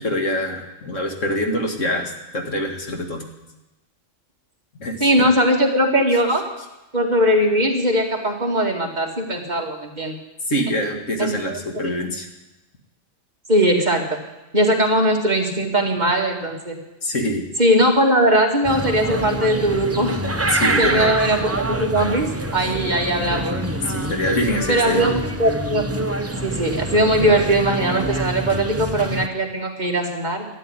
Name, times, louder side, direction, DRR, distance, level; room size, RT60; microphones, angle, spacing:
voice 1, 0.0-3.3 4.8-5.3 10.5-12.3 17.0-17.5 20.5-21.1 23.9-25.1, left 1 dB, 70° left, 2 dB, 2.5 m, -24 dB
voice 2, 5.0-6.5 6.9-10.2 11.2-11.9 13.5-14.0 14.5-16.8 17.6-20.2 20.8-23.6 24.7-25.9 26.4-30.5, right 1 dB, 35° right, 0 dB, 2.4 m, -20 dB
sound 1, 18.6-29.3, right 1 dB, 15° right, 0.7 m, -26 dB
13.5 x 10.0 x 9.8 m, 1.0 s
omnidirectional pair, 1.3 m